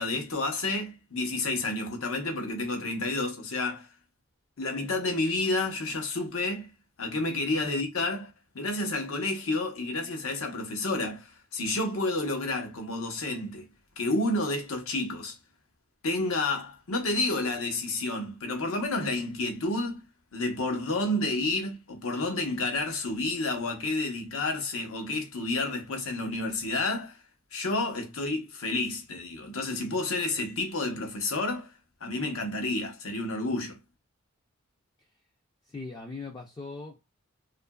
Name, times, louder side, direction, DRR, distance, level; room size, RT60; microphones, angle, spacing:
voice 1, 0.0-3.9 4.6-6.7 7.0-13.7 14.0-15.4 16.0-20.1 20.3-27.2 27.5-31.7 32.0-33.8, left 2 dB, 80° left, 0.8 m, -30 dB
voice 2, 35.6-37.1, left 3 dB, 20° left, 0.4 m, -40 dB
2.7 x 2.5 x 2.2 m
head